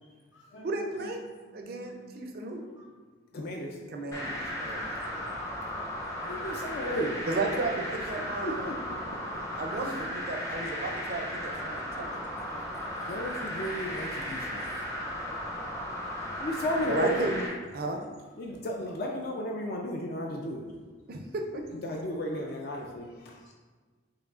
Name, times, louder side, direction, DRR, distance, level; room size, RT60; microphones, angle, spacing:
voice 1, 0.0-1.1 1.4-2.1 2.7-3.5 4.8-6.7 9.4-9.6 14.3-14.7 22.3-22.8 23.2-23.5, right 2 dB, 70° left, -1 dB, 0.8 m, -56 dB
voice 2, 0.6-1.2 1.5-2.6 3.9-4.9 7.3-8.8 9.6-10.0 10.3-11.9 12.1-12.2 16.9-17.5 17.7-18.0 21.1-21.6, right 2 dB, 50° right, 3 dB, 0.4 m, -33 dB
voice 3, 3.3-4.1 6.3-7.3 8.2-9.2 9.8-9.9 13.1-14.6 16.4-17.3 18.4-20.6 21.8-23.4, equal, 50° left, 1 dB, 0.3 m, -34 dB
sound 1, 4.1-17.5, equal, 15° left, 0.6 m, -35 dB
4.8 x 2.9 x 2.4 m, 1.4 s
head